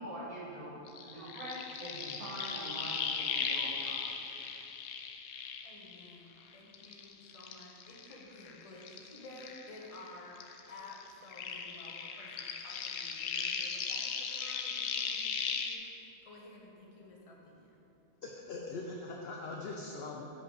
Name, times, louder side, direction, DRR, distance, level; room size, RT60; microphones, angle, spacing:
voice 1, 0.0-4.1, right 1 dB, 85° right, -8 dB, 2.3 m, -44 dB
sound 1, 0.9-6.4 6.7-10.1 10.4-15.8, left 6 dB, 85° left, 1.0 m, -38 dB
voice 2, 5.6-17.8, left 2 dB, 30° left, -2 dB, 0.8 m, -53 dB
voice 3, 18.2-20.4, left 3 dB, 60° left, 0 dB, 0.6 m, -41 dB
6.6 x 5.3 x 3.9 m, 2.8 s
omnidirectional pair, 1.5 m